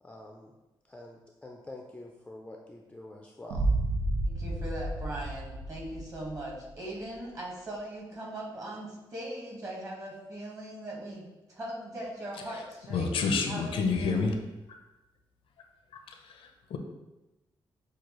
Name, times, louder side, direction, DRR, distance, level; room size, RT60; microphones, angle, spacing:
voice 1, 0.0-0.5 0.8-3.6, left 1 dB, 15° left, 0 dB, 0.3 m, -46 dB
sound 1, 3.5-6.5, right 2 dB, 85° right, 0.7 m, -31 dB
voice 2, 4.2-11.2 11.5-14.3, right 1 dB, 35° right, -3 dB, 1.3 m, -40 dB
voice 3, 12.9-14.3 16.1-16.8, left 4 dB, 80° left, 4 dB, 0.5 m, -29 dB
6.3 x 2.3 x 2.9 m, 1.0 s
cardioid pair, 120°, 9 cm